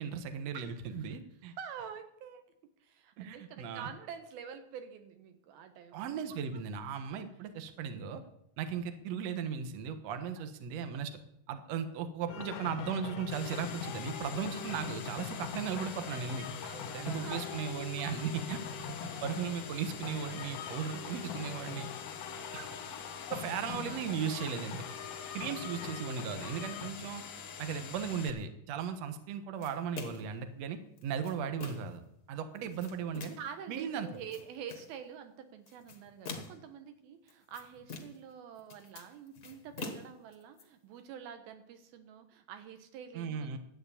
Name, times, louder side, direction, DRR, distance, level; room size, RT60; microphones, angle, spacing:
voice 1, 0.0-1.5 3.2-3.9 5.9-8.2 8.6-11.1 11.5-16.5 16.9-21.9 22.5-22.7 23.3-24.8 25.3-27.2 27.6-32.0 32.3-33.4 33.7-34.1 43.1-43.6, right 7 dB, 60° right, 8 dB, 2.0 m, -37 dB
voice 2, 0.5-1.2 1.6-2.4 2.8-6.6 10.4-10.5 16.6-17.6 18.2-18.3 19.0-19.2 20.5-21.6 22.3-23.4 23.8-24.0 25.3-25.4 25.8-25.9 32.6-32.7 33.4-43.6, right 8 dB, 85° right, 8 dB, 3.1 m, -48 dB
hindu musical ceremony in the temple, 12.3-26.9, left 8 dB, 70° left, 2.5 m, -43 dB
sound 1, 13.3-28.3, left 6 dB, 55° left, 1.8 m, -46 dB
sound 2, 29.6-30.4 31.0-32.0 32.5-33.5 34.1-34.9 35.7-36.7 37.3-38.3 38.6-40.6, left 3 dB, 90° left, 0.8 m, -45 dB
12.0 x 8.7 x 8.4 m, 0.75 s
omnidirectional pair, 4.2 m